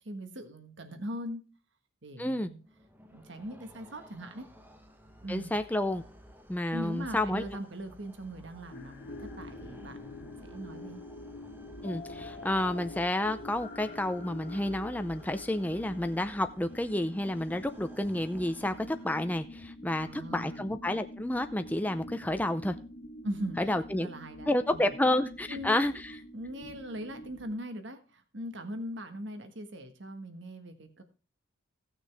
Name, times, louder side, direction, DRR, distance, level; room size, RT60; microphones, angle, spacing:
voice 1, 0.0-1.4 2.0-2.6 3.1-4.5 5.2-5.5 6.7-11.0 20.0-20.6 23.2-23.6 24.0-24.9 25.5-25.9 26.3-31.0, equal, 55° right, 7 dB, 1.4 m, -40 dB
voice 2, 2.2-2.5 5.3-6.0 6.5-7.5 11.8-22.8 23.6-24.1 24.5-26.2, left 1 dB, 10° left, 9 dB, 0.5 m, -30 dB
sound 1, 2.6-19.6, equal, 10° right, 0.9 m, -53 dB
sound 2, 8.7-27.6, left 1 dB, 45° left, 1.6 m, -46 dB
16.5 x 6.4 x 3.5 m, 0.35 s
head